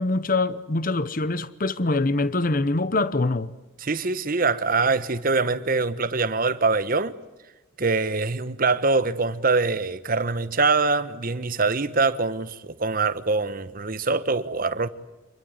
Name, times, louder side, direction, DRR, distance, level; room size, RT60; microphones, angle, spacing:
voice 1, 0.0-3.5, left 2 dB, 45° left, 0.9 m, -24 dB
voice 2, 3.8-7.1 7.8-14.9, right 3 dB, 45° right, 1.1 m, -24 dB
27.0 x 21.5 x 9.6 m
head